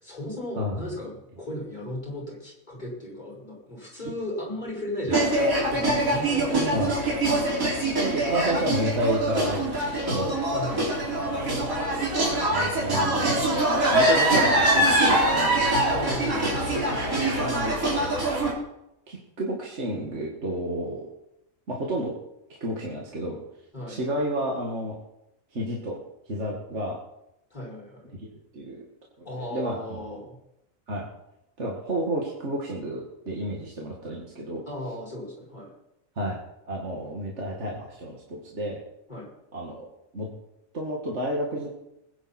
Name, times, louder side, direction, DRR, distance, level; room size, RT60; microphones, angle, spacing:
voice 1, 0.0-7.2 10.5-11.1 15.8-16.9 23.7-24.0 27.5-28.0 29.2-30.4 34.7-35.7 39.1-39.3, left 1 dB, 30° left, -5 dB, 5.8 m, -36 dB
sound 1, 5.1-18.5, right 1 dB, 75° right, 4.0 m, -24 dB
voice 2, 8.0-10.4 11.1-11.6 12.5-15.6 17.4-17.7 19.1-21.1 21.7-22.1 22.6-23.4 23.9-25.0 25.5-26.0 26.3-27.0 28.2-28.3 28.5-28.8 29.5-30.0 30.9-31.1 31.6-34.6 36.2-36.4 36.7-38.8 39.5-39.9 40.1-40.3 40.7-41.7, right 1 dB, 55° right, -1 dB, 2.3 m, -30 dB
20.5 x 10.5 x 4.4 m, 0.84 s
omnidirectional pair, 1.5 m